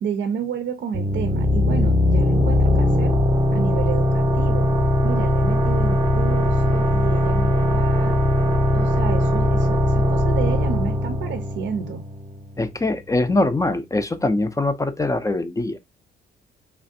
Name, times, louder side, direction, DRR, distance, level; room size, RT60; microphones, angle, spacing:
voice 1, 0.0-3.1 3.5-4.7 5.0-8.2 8.7-12.0, right 7 dB, 65° right, 0.5 m, -30 dB
sound 1, 0.9-12.3, left 1 dB, 25° right, 0.7 m, -20 dB
voice 2, 12.6-15.8, left 2 dB, 15° left, 0.4 m, -22 dB
3.2 x 2.4 x 2.5 m
cardioid pair, 90°, 20 cm